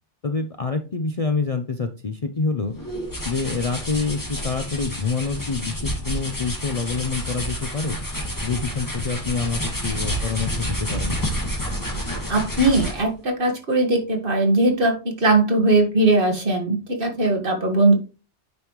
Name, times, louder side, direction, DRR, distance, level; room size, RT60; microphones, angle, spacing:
voice 1, 0.2-2.7 3.2-8.0 8.4-11.2, left 4 dB, 45° left, 7 dB, 0.5 m, -27 dB
sound 1, 2.7-13.1, equal, 15° left, 1.9 m, -29 dB
voice 2, 12.3-17.9, right 2 dB, 50° right, 2 dB, 1.8 m, -20 dB
9.3 x 5.1 x 3.1 m, 0.32 s
omnidirectional pair, 1.2 m